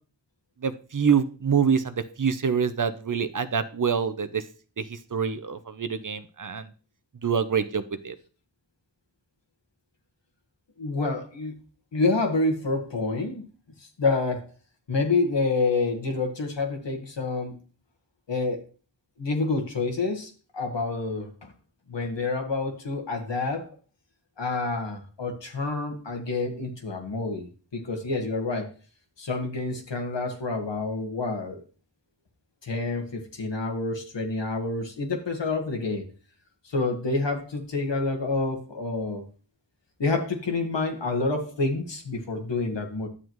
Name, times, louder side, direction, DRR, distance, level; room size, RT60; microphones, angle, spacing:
voice 1, 0.6-4.4 4.8-6.7 7.2-8.1, right 6 dB, 45° right, 12 dB, 0.7 m, -26 dB
voice 2, 10.8-11.5 11.9-13.4 14.0-14.4 14.9-17.5 18.3-18.6 19.2-21.5 21.9-23.7 24.4-28.7 29.2-31.6 32.6-36.1 36.7-39.2 40.0-43.1, left 3 dB, 80° left, 3 dB, 1.6 m, -28 dB
9.9 x 7.3 x 3.1 m, 0.37 s
cardioid pair, 45°, 42 cm